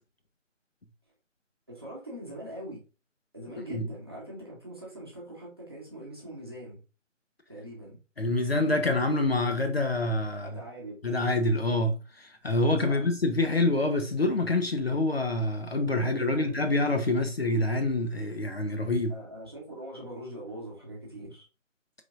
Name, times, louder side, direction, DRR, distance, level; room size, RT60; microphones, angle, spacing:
voice 1, 1.7-2.8 3.3-6.8 7.5-8.0 10.3-11.0 12.8-13.1 16.0-16.7 19.1-21.5, right 1 dB, 20° right, 0.9 m, -42 dB
voice 2, 8.2-10.6 11.0-19.2, left 2 dB, 50° left, 0.5 m, -26 dB
4.2 x 3.2 x 2.4 m
figure-of-eight pair, 160°, 39 cm